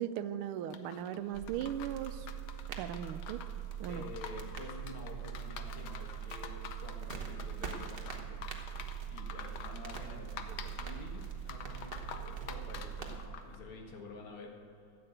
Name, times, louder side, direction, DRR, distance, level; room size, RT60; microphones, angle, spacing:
voice 1, 0.0-2.3 2.8-3.4 3.8-4.0, right 10 dB, 90° right, 12 dB, 1.5 m, -38 dB
sound 1, 0.7-13.6, left 7 dB, 65° left, 1.1 m, -48 dB
sound 2, 1.3-13.3, right 9 dB, 40° right, 0.9 m, -42 dB
voice 2, 3.9-8.4 9.1-14.6, left 3 dB, 85° left, 0 dB, 2.6 m, -49 dB
13.5 x 7.9 x 7.9 m, 2.5 s
omnidirectional pair, 2.3 m